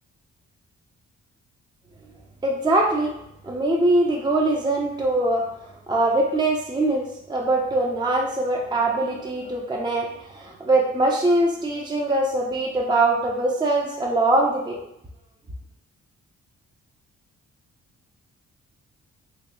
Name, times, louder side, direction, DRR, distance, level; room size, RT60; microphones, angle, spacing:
voice 1, 2.4-3.1 3.4-5.5 5.9-14.8, right 2 dB, 15° right, -1 dB, 0.6 m, -22 dB
3.2 x 3.0 x 2.9 m, 0.79 s
supercardioid pair, 60°, 32 cm